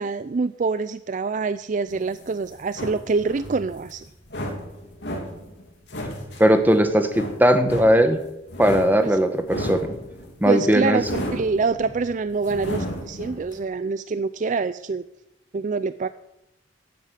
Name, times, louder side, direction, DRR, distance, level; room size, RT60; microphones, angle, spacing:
voice 1, 0.0-4.1 9.0-9.2 10.5-15.0 15.5-16.1, right 4 dB, 45° right, 13 dB, 0.4 m, -25 dB
sound 1, 1.9-13.6, equal, 70° left, 3.0 m, -34 dB
voice 2, 6.4-8.2 8.6-10.0 10.4-11.0, equal, 10° right, 7 dB, 1.2 m, -18 dB
12.0 x 8.4 x 8.5 m, 0.87 s
head